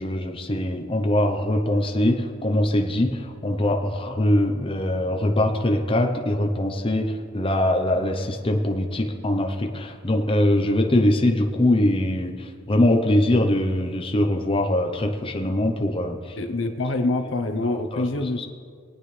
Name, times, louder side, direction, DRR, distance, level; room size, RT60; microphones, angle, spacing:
voice 1, 0.0-16.4 17.9-18.1, left 1 dB, 30° left, 3 dB, 0.8 m, -22 dB
voice 2, 16.4-18.5, left 2 dB, 70° left, 5 dB, 0.9 m, -25 dB
23.0 x 9.1 x 3.3 m, 2.1 s
head